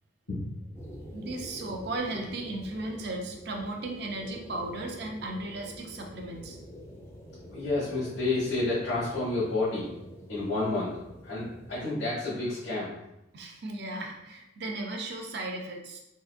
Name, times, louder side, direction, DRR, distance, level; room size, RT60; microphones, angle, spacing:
sound 1, 0.7-11.8, equal, 15° left, 0.5 m, -46 dB
voice 1, 1.1-6.6 13.3-16.0, right 2 dB, 60° right, 2 dB, 0.5 m, -36 dB
voice 2, 7.5-9.9 10.3-10.9 11.2-12.9, left 2 dB, 85° left, -12 dB, 1.4 m, -30 dB
3.8 x 2.5 x 2.4 m, 0.88 s
head